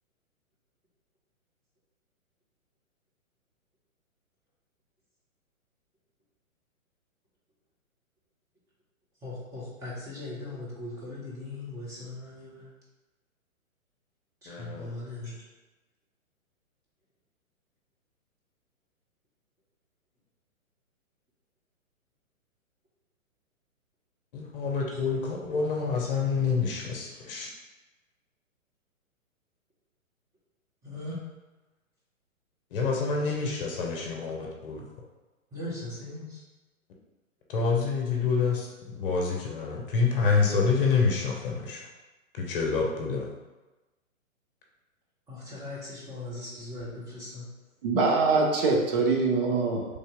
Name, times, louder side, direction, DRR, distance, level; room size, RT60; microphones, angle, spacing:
voice 1, 9.2-12.7 14.4-15.3 27.1-27.2 30.8-31.2 35.5-36.4 45.3-47.5, left 2 dB, 5° right, -8 dB, 0.7 m, -39 dB
voice 2, 14.5-14.9 24.3-27.5 32.7-34.8 37.5-38.7 39.0-41.9 42.3-43.3, left 5 dB, 40° left, -1 dB, 0.8 m, -27 dB
voice 3, 47.8-49.9, right 4 dB, 40° right, 0 dB, 0.8 m, -23 dB
3.3 x 2.7 x 3.6 m, 1.1 s
figure-of-eight pair, 125°, 42 cm